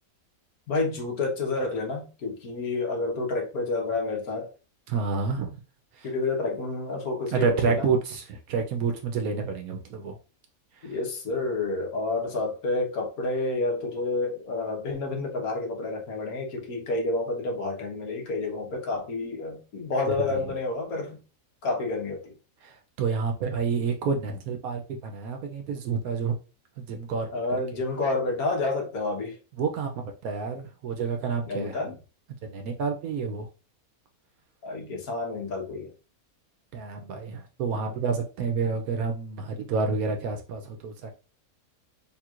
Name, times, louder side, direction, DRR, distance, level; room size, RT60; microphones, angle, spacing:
voice 1, 0.7-4.5 6.0-7.9 10.8-21.2 21.6-22.3 27.3-29.4 31.5-32.0 34.6-35.9, left 3 dB, 80° left, 1.6 m, -29 dB
voice 2, 4.9-5.6 6.0-6.1 7.3-10.2 10.8-10.9 20.1-20.2 22.6-26.4 26.8-27.3 29.6-31.9 32.4-33.5 36.7-41.1, right 5 dB, 80° right, 1.1 m, -29 dB
4.4 x 3.6 x 2.4 m
omnidirectional pair, 1.5 m